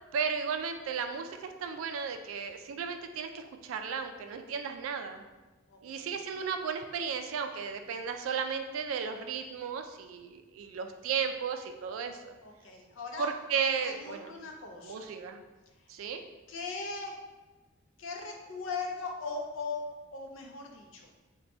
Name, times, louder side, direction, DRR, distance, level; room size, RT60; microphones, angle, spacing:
voice 1, 0.1-5.2 5.8-12.3 13.2-14.3 14.8-15.4 15.9-16.2, right 6 dB, 85° right, 7 dB, 0.3 m, -34 dB
voice 2, 5.7-6.2 12.4-13.3 13.8-15.1 16.5-17.2 18.0-19.8 20.1-21.0, left 4 dB, 75° left, 2 dB, 0.5 m, -39 dB
4.1 x 2.2 x 2.6 m, 1.2 s
head